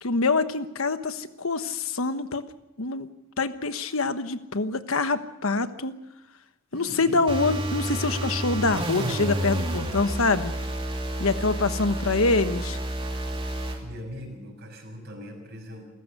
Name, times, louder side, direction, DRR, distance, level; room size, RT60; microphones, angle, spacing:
voice 1, 0.0-2.4 2.8-3.1 3.4-5.9 6.7-10.5 11.2-12.8, left 3 dB, 85° left, 10 dB, 1.3 m, -25 dB
voice 2, 6.7-7.4 13.8-15.9, left 1 dB, 50° right, 2 dB, 6.4 m, -40 dB
sound 1, 7.3-13.8, right 1 dB, 25° right, 2.9 m, -30 dB
28.5 x 14.5 x 6.7 m, 0.96 s
head